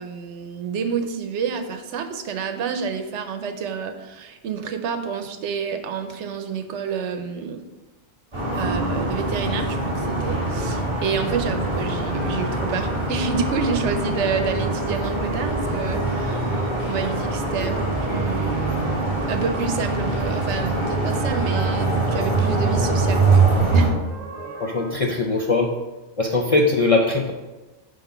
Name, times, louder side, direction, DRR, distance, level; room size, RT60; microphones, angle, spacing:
voice 1, 0.0-7.6 8.5-18.8 19.3-23.5 23.7-24.0, right 6 dB, 80° right, 7 dB, 1.0 m, -29 dB
sound 1, 8.3-23.9, right 2 dB, 25° right, 1.8 m, -23 dB
sound 2, 11.0-24.9, right 2 dB, 55° right, 1.1 m, -36 dB
voice 2, 24.6-25.7 26.2-27.3, left 3 dB, 55° left, 1 dB, 0.4 m, -20 dB
5.0 x 3.9 x 5.5 m, 1.1 s
omnidirectional pair, 1.2 m